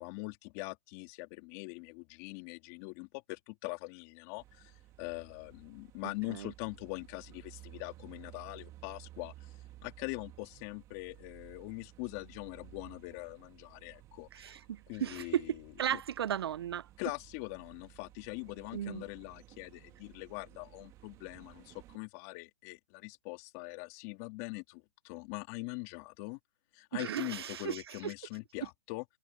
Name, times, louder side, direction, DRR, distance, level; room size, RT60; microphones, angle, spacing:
voice 1, 0.0-4.7 5.0-9.5 9.8-14.6 14.9-15.6 15.9-16.0 17.0-26.4 26.7-29.1, left 25 dB, 25° left, 2.7 m, -43 dB
sound 1, 4.4-22.0, right 15 dB, 20° right, 2.3 m, -56 dB
voice 2, 14.3-16.9 18.7-19.0 26.9-28.1, right 10 dB, 50° right, 0.6 m, -35 dB
hypercardioid pair, 155°, 17 cm